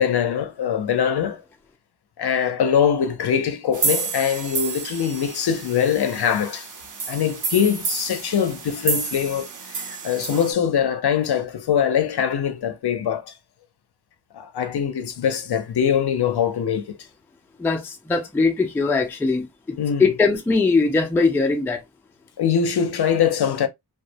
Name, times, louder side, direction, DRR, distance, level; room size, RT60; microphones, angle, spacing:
voice 1, 0.0-1.4 2.2-6.7 7.1-13.3 14.3-17.0 19.8-20.1 22.4-23.7, left 8 dB, 65° left, 0.5 m, -22 dB
sound 1, 3.7-10.5, right 4 dB, 45° right, 0.6 m, -30 dB
voice 2, 17.6-21.8, left 4 dB, 5° left, 0.3 m, -21 dB
2.3 x 2.1 x 2.7 m
wide cardioid pair, 155°, 43 cm